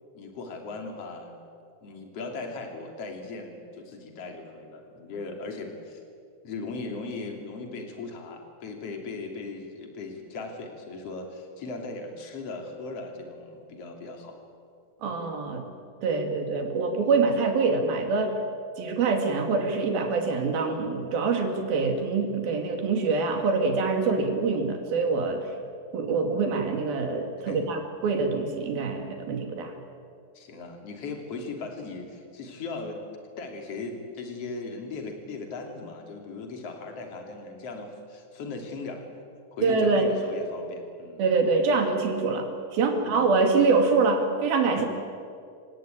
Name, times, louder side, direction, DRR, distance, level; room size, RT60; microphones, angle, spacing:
voice 1, 0.1-1.3 1.8-6.0 6.4-14.3 16.1-16.3 27.5-27.7 30.4-33.0 33.4-39.0 39.5-41.2 42.9-43.3 44.8-44.9, left 3 dB, 45° left, 3 dB, 3.7 m, -38 dB
voice 2, 15.0-15.7 16.0-18.4 18.8-25.5 25.9-29.8 39.6-40.1 41.2-44.9, right 4 dB, 90° right, 5 dB, 4.3 m, -25 dB
28.0 x 17.5 x 8.9 m, 2.3 s
omnidirectional pair, 4.1 m